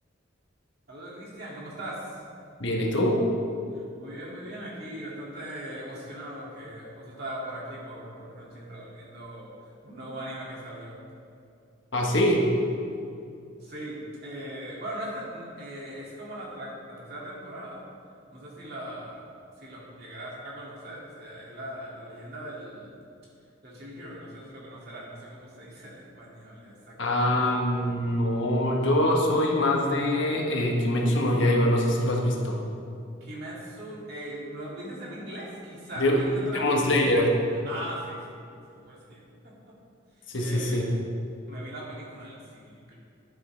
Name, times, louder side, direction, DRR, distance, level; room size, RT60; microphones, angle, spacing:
voice 1, 0.9-2.2 3.7-9.5 9.8-11.0 13.6-17.8 18.3-19.2 19.6-22.9 23.6-27.4 33.2-36.7 37.7-38.4 38.7-39.5 40.4-40.9 41.5-43.0, right 1 dB, 50° right, -5 dB, 2.4 m, -40 dB
voice 2, 2.6-3.2 11.9-12.5 27.0-32.6 36.0-37.3 40.3-40.9, left 1 dB, 70° left, 0 dB, 1.3 m, -24 dB
11.0 x 8.3 x 3.4 m, 2.5 s
head